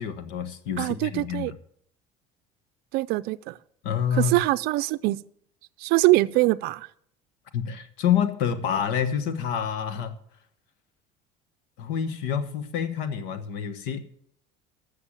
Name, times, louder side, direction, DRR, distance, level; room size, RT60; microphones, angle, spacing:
voice 1, 0.0-1.5 3.8-4.3 7.5-10.1 11.8-14.0, left 8 dB, 80° left, 11 dB, 1.4 m, -27 dB
voice 2, 0.8-1.5 2.9-3.6 4.2-5.2 5.8-6.9, right 19 dB, 65° right, 14 dB, 0.5 m, -23 dB
13.0 x 7.0 x 7.4 m, 0.67 s
cardioid pair, 150°, 17 cm